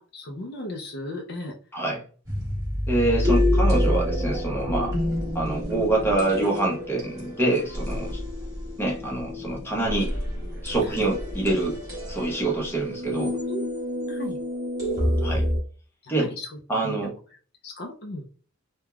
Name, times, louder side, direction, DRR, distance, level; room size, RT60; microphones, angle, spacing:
voice 1, 0.0-1.5 4.8-5.0 10.8-11.0 13.5-13.6 14.0-14.4 16.0-16.5 16.8-17.1 17.6-18.2, left 1 dB, 45° left, 2 dB, 0.4 m, -36 dB
sound 1, 2.3-15.6, left 1 dB, 20° right, 1.2 m, -28 dB
voice 2, 2.9-4.9 5.3-8.2 8.8-10.1 10.6-11.8 12.1-13.4 15.2-15.4 16.1-16.3 16.7-17.1, right 2 dB, 10° left, -2 dB, 0.8 m, -25 dB
3.3 x 2.2 x 2.2 m, 0.40 s
head